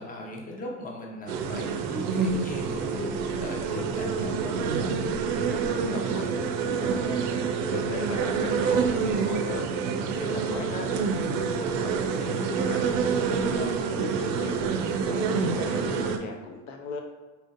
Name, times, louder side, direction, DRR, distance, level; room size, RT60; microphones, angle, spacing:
voice 1, 0.0-4.5 13.5-14.3, left 1 dB, 20° left, -1 dB, 0.7 m, -38 dB
sound 1, 1.3-16.2, right 5 dB, 55° right, 0.5 m, -27 dB
voice 2, 5.4-9.7 10.1-10.9 11.3-12.9 13.5-14.6 15.0-17.0, left 4 dB, 75° left, 3 dB, 0.6 m, -38 dB
4.0 x 2.5 x 2.5 m, 1.3 s
hypercardioid pair, 75°, 43 cm